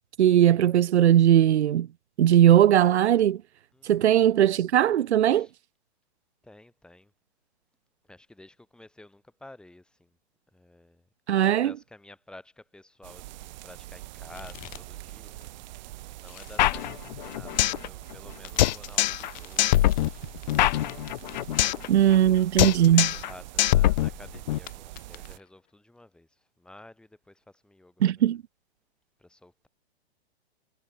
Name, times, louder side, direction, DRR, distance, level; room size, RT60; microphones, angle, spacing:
voice 1, 0.2-1.9 2.2-3.4 3.8-5.5 11.3-11.7 21.9-23.1 28.0-28.4, right 11 dB, 80° right, 0.6 m, -19 dB
voice 2, 6.4-7.1 8.0-10.2 10.5-11.1 11.4-15.8 16.1-20.8 21.8-28.3 29.2-29.7, left 1 dB, 5° left, 5.2 m, -52 dB
sound 1, 13.0-25.4, right 17 dB, 45° right, 4.9 m, -44 dB
sound 2, 14.3-15.1 15.4-16.8 18.3-22.3 22.7-22.8 24.7-25.5, left 19 dB, 25° left, 5.0 m, -49 dB
sound 3, 16.6-17.9 18.1-18.2 18.6-19.3 19.6-21.9 22.1-22.3 22.6-23.3 23.6-24.6, left 14 dB, 45° left, 0.8 m, -23 dB
hypercardioid pair, 145°, 33 cm